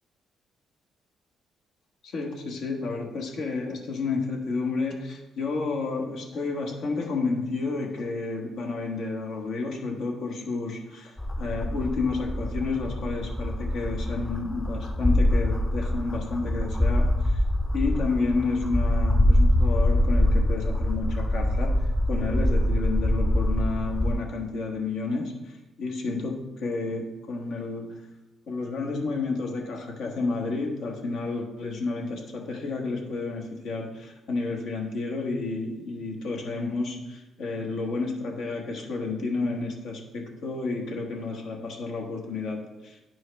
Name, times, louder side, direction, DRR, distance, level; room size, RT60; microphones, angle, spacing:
voice 1, 2.0-17.4 17.7-28.0 28.5-43.0, left 3 dB, 75° left, 1 dB, 1.3 m, -31 dB
sound 1, 11.2-24.1, left 1 dB, 15° left, 0.6 m, -24 dB
10.5 x 4.7 x 3.3 m, 1.0 s
cardioid pair, 90°, 0 cm